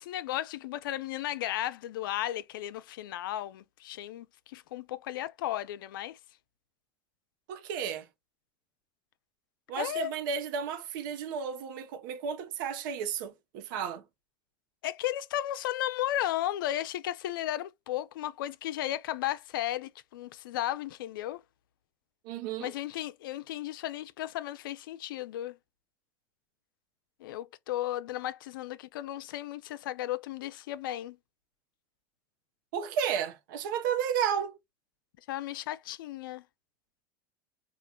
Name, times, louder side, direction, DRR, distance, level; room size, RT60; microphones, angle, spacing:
voice 1, 0.0-6.2 9.8-10.1 14.8-21.4 22.6-25.6 27.2-31.2 35.3-36.4, left 13 dB, 80° left, 0.4 m, -34 dB
voice 2, 7.5-8.1 9.7-14.0 22.2-22.7 32.7-34.6, right 7 dB, 70° right, 0.8 m, -33 dB
4.3 x 2.4 x 2.2 m
supercardioid pair, 105°, 11 cm